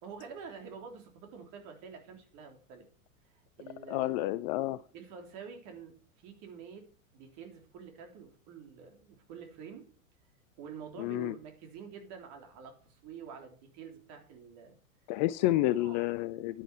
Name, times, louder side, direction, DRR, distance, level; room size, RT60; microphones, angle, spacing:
voice 1, 0.0-2.9 3.3-4.2 4.9-5.9 6.2-9.9 10.6-14.8 15.4-16.0, right 6 dB, 40° right, 4 dB, 3.5 m, -48 dB
voice 2, 3.9-4.8 11.0-11.3 15.1-16.6, left 16 dB, 35° left, 15 dB, 0.5 m, -30 dB
10.5 x 10.0 x 4.7 m, 0.41 s
figure-of-eight pair, 90°, 41 cm